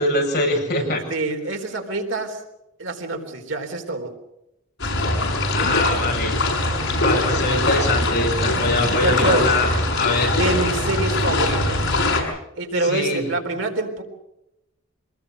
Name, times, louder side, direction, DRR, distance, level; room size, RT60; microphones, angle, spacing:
voice 1, 0.0-1.0 5.5-6.4 6.7-10.3 12.8-13.3, left 2 dB, 55° left, 0 dB, 7.8 m, -23 dB
voice 2, 1.1-2.4 2.8-4.1 8.9-9.5 10.4-12.0 12.6-14.0, right 2 dB, 75° right, 3 dB, 3.9 m, -26 dB
sound 1, 4.8-12.2, left 2 dB, 80° left, 6.6 m, -22 dB
25.5 x 20.5 x 6.5 m, 0.89 s
head